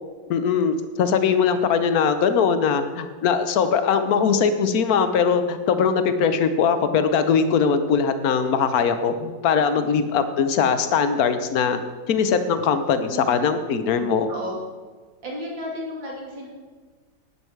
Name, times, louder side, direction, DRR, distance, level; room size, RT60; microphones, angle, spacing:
voice 1, 0.3-11.8 12.1-14.3, left 6 dB, 60° left, 10 dB, 1.2 m, -21 dB
voice 2, 13.1-13.4 13.7-14.6 15.2-16.5, equal, 70° right, -2 dB, 3.5 m, -34 dB
11.0 x 9.9 x 4.6 m, 1.5 s
omnidirectional pair, 2.1 m